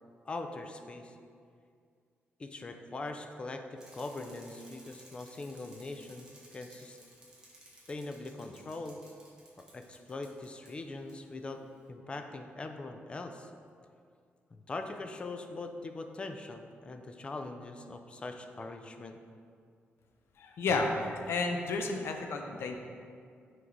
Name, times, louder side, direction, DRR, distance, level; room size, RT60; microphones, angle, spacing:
voice 1, 0.3-1.2 2.4-6.3 6.5-7.0 7.9-9.0 9.6-11.6 11.9-13.5 14.5-19.2, left 2 dB, 25° left, 6 dB, 0.3 m, -41 dB
Bicycle, 3.8-10.7 11.1-11.2, right 1 dB, 20° right, 1.1 m, -57 dB
voice 2, 20.4-22.8, left 3 dB, 70° left, 4 dB, 0.6 m, -32 dB
6.1 x 4.6 x 3.9 m, 2.2 s
wide cardioid pair, 170°, 4 cm